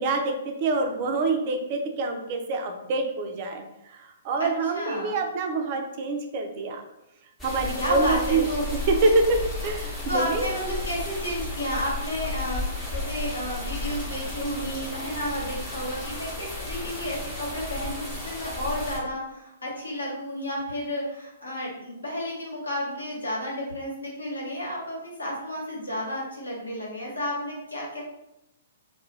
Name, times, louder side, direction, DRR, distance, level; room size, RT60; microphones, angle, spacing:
voice 1, 0.0-3.6 4.0-6.8 7.4-8.5 8.9-10.5, right 3 dB, 45° right, 4 dB, 0.5 m, -26 dB
voice 2, 4.4-5.1 7.8-8.6 10.1-28.0, equal, 85° left, -4 dB, 1.1 m, -32 dB
sound 1, 7.4-19.0, left 2 dB, 10° left, 0.8 m, -33 dB
2.3 x 2.2 x 3.1 m, 0.86 s
figure-of-eight pair, 120°, 0 cm